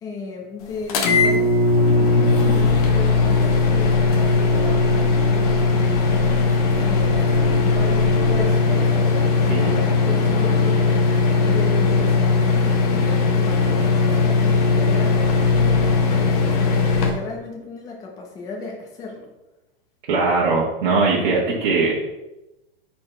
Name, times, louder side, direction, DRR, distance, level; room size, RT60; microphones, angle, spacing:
voice 1, 0.0-1.5 2.0-7.2 7.6-11.0 11.4-19.3, left 3 dB, 10° left, -1 dB, 0.8 m, -34 dB
sound 1, 0.9-17.1, left 4 dB, 40° left, 1.0 m, -18 dB
sound 2, 2.2-8.8, left 4 dB, 60° left, 2.3 m, -31 dB
voice 2, 20.1-21.9, right 3 dB, 55° right, -6 dB, 1.5 m, -20 dB
6.0 x 4.3 x 4.5 m, 0.98 s
supercardioid pair, 170°, 29 cm